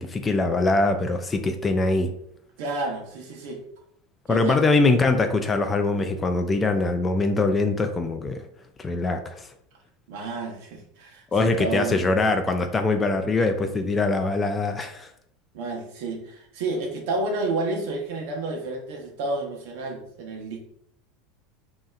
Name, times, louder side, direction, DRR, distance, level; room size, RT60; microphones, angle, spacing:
voice 1, 0.0-2.1 4.3-8.5 8.8-9.5 11.3-15.1, left 3 dB, 15° left, 7 dB, 0.3 m, -23 dB
voice 2, 2.6-3.6 4.3-4.6 10.1-12.0 15.5-20.6, right 2 dB, 65° right, 2 dB, 1.0 m, -30 dB
5.3 x 2.8 x 2.4 m, 0.68 s
supercardioid pair, 160°, 0 cm